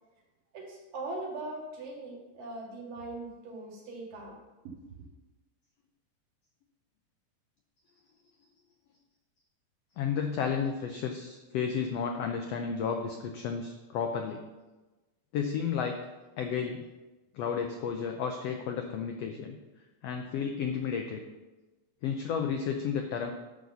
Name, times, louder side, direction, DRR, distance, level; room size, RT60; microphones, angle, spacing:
voice 1, 0.5-4.4 4.7-4.8, right 2 dB, 90° right, -3 dB, 3.7 m, -40 dB
voice 2, 10.0-14.4 15.3-16.1 16.4-16.9 17.3-19.6 20.0-21.2 22.0-23.3, left 6 dB, 85° left, 4 dB, 1.4 m, -32 dB
11.0 x 4.0 x 6.9 m, 1.1 s
omnidirectional pair, 3.7 m